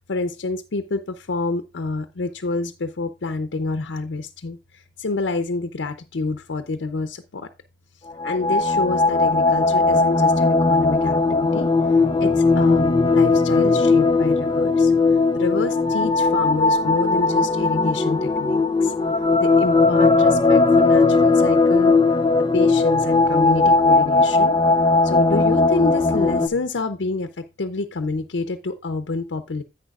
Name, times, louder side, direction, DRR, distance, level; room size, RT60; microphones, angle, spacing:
voice 1, 0.0-7.5 8.2-18.9 19.4-21.9 22.4-24.6 25.0-29.6, left 3 dB, 85° left, 8 dB, 0.6 m, -28 dB
sound 1, 8.1-26.5, left 3 dB, 25° left, 0.4 m, -18 dB
10.5 x 8.7 x 2.4 m, 0.27 s
head